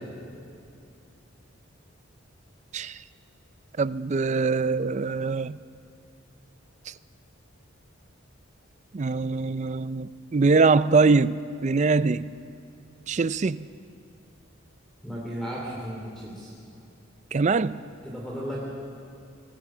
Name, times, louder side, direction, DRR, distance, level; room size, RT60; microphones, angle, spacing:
voice 1, 3.8-5.6 6.9-7.0 8.9-12.3 13.1-13.7 17.3-17.8, right 4 dB, 35° right, 16 dB, 0.4 m, -23 dB
voice 2, 15.0-16.5 18.0-18.6, equal, ahead, -5 dB, 2.9 m, -35 dB
26.0 x 20.0 x 6.2 m, 2.6 s
head